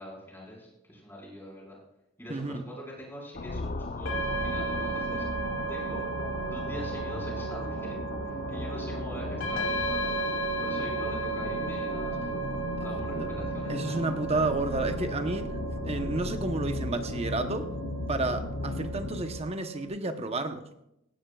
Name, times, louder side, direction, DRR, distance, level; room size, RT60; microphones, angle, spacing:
voice 1, 0.0-1.8 2.2-5.3 5.7-6.0 6.5-10.3 10.6-12.2 12.8-14.1 18.3-18.5, equal, 10° left, -3 dB, 5.2 m, -43 dB
voice 2, 2.3-2.6 13.1-13.3 13.7-17.7 18.1-20.7, right 2 dB, 30° right, 7 dB, 1.0 m, -31 dB
sound 1, 3.3-19.5, left 2 dB, 45° left, 0.7 m, -35 dB
sound 2, 4.1-19.9, right 4 dB, 85° left, 3.1 m, -35 dB
18.0 x 16.0 x 2.4 m, 0.84 s
head